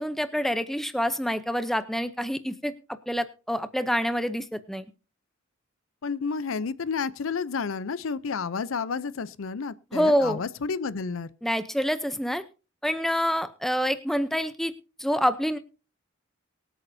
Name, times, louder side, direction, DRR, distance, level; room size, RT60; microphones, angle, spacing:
voice 1, 0.0-2.7 3.1-4.8 9.9-10.4 11.4-12.4 12.8-14.7 15.0-15.6, equal, ahead, 0.6 m, -26 dB
voice 2, 6.0-11.3, left 5 dB, 85° left, 0.6 m, -31 dB
23.5 x 8.4 x 2.7 m
head